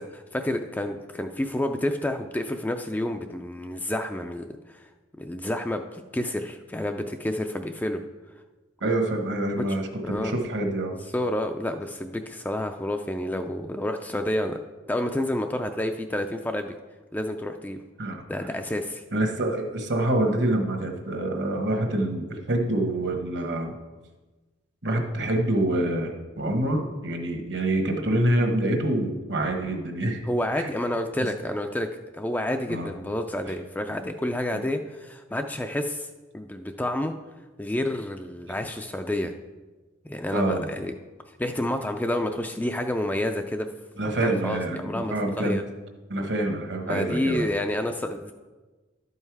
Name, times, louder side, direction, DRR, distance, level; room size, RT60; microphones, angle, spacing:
voice 1, 0.1-4.8 5.2-8.0 9.6-9.7 10.0-10.3 11.1-14.6 14.9-16.7 17.1-17.8 18.3-19.0 30.3-31.9 32.1-36.1 36.3-37.1 37.6-39.3 40.1-40.9 41.4-43.7 44.1-45.6 46.9-48.3, left 1 dB, 10° left, 6 dB, 0.3 m, -29 dB
voice 2, 8.8-9.9 10.2-10.9 18.0-18.2 19.1-23.7 24.8-30.2 30.5-30.7 32.7-32.9 40.3-40.7 44.0-45.6 46.1-47.5, right 1 dB, 65° right, 4 dB, 1.2 m, -26 dB
11.5 x 5.5 x 4.7 m, 1.2 s
head